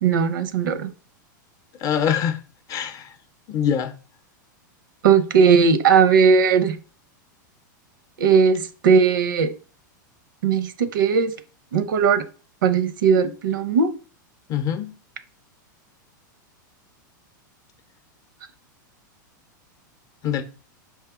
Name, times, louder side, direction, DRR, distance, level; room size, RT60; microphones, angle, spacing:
voice 1, 0.0-0.9 5.0-6.8 8.2-9.5 10.4-11.3 11.7-12.2 12.6-13.9, right 6 dB, 85° right, 0.6 m, -18 dB
voice 2, 1.8-2.4 2.7-3.1 3.5-3.9 14.5-14.9 20.2-20.4, left 8 dB, 35° left, 0.6 m, -23 dB
4.9 x 2.7 x 3.6 m
hypercardioid pair, 125°, 11 cm